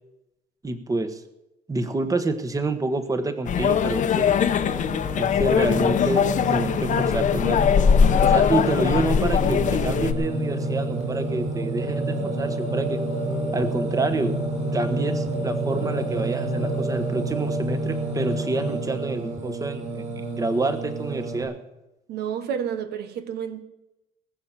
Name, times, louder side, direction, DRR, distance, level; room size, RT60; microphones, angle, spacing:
voice 1, 0.6-1.2 1.7-4.3 5.2-7.6 8.2-13.0 13.5-14.3 14.7-21.5, right 2 dB, 20° right, 1.4 m, -27 dB
sound 1, 3.5-10.1, left 7 dB, 50° left, 1.0 m, -21 dB
Singing, 4.3-21.4, right 2 dB, 40° right, 4.9 m, -29 dB
voice 2, 22.1-23.6, right 8 dB, 75° right, 1.4 m, -30 dB
19.5 x 6.7 x 7.5 m
cardioid pair, 110°, 17 cm